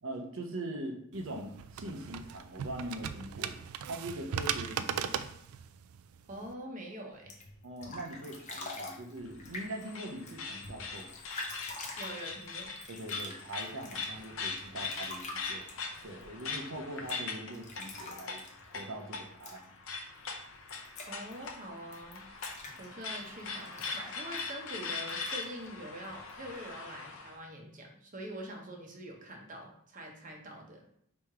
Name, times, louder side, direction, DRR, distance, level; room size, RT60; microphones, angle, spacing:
voice 1, 0.0-3.5 3.9-5.1 7.6-11.2 12.9-15.7 16.0-18.4 18.7-19.7, right 1 dB, 65° right, 3 dB, 0.7 m, -42 dB
sound 1, 1.1-6.5, right 8 dB, 80° right, 0.3 m, -38 dB
voice 2, 6.3-7.3 12.0-12.7 21.1-22.2 22.8-30.9, right 1 dB, 40° right, 1 dB, 0.8 m, -44 dB
sound 2, 7.1-26.7, left 2 dB, 35° left, 0.7 m, -48 dB
sound 3, 9.2-27.3, left 4 dB, 70° left, 0.6 m, -41 dB
3.4 x 3.0 x 4.8 m, 0.70 s
head